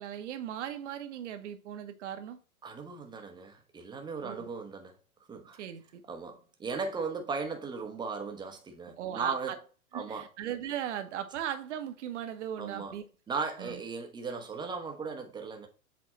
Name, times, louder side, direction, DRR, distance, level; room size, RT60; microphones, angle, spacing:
voice 1, 0.0-2.4 4.2-4.5 5.6-6.0 9.0-9.6 9.9-13.0 13.6-13.8, right 10 dB, 55° right, 1.2 m, -38 dB
voice 2, 2.6-4.9 5.3-5.6 6.1-9.5 9.9-10.3 12.6-12.9 13.3-15.7, right 4 dB, 10° right, 1.1 m, -37 dB
7.5 x 3.6 x 4.3 m
figure-of-eight pair, 110°, 44 cm